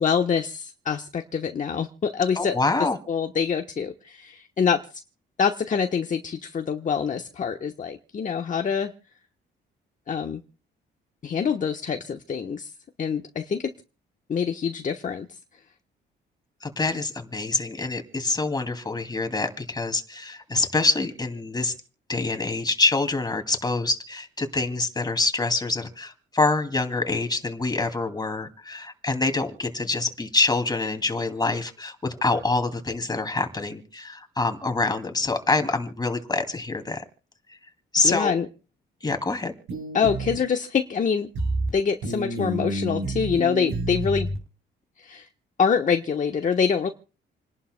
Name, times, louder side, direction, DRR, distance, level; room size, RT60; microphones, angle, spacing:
voice 1, 0.0-2.6 3.1-4.8 5.4-8.9 10.1-10.4 11.2-12.7 13.0-13.7 14.3-15.3 38.0-38.5 39.9-41.3 41.7-44.3 45.0-45.3 45.6-46.9, left 6 dB, 40° left, 5 dB, 1.1 m, -25 dB
voice 2, 2.4-3.0 16.6-21.7 22.1-37.0 37.9-38.3 39.0-39.5, left 3 dB, 20° left, 7 dB, 2.5 m, -26 dB
sound 1, 39.7-40.4 41.3-41.7 42.0-44.4, right 2 dB, 85° right, 7.9 m, -29 dB
29.0 x 11.5 x 2.2 m, 0.34 s
cardioid pair, 90°, 20 cm